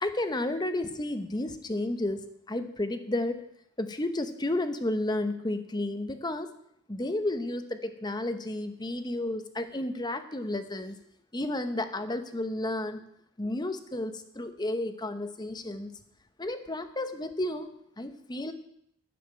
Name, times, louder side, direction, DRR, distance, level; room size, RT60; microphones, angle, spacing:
voice 1, 0.0-2.2 2.5-3.4 3.8-6.5 6.9-11.0 11.3-13.0 13.4-15.9 16.4-17.7 18.0-18.5, left 1 dB, 20° left, 9 dB, 0.8 m, -32 dB
10.5 x 7.2 x 8.9 m, 0.73 s
head